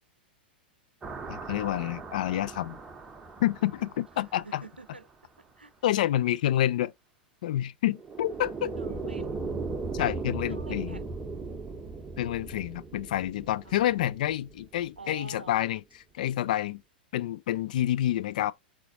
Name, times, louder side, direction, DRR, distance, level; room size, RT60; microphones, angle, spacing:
sound 1, 1.0-4.9 7.9-15.1, right 4 dB, 15° right, 0.8 m, -38 dB
voice 1, 1.3-2.8 3.4-4.6 5.8-6.9 7.4-8.7 9.9-11.0 12.2-15.8 16.1-16.8 17.1-18.5, left 13 dB, 50° left, 0.3 m, -28 dB
voice 2, 4.4-5.1 5.4-6.1 8.8-9.5 10.5-11.2 13.6-13.9 15.0-15.7, right 3 dB, 85° right, 0.5 m, -47 dB
4.8 x 3.9 x 2.7 m
figure-of-eight pair, 100°, 5 cm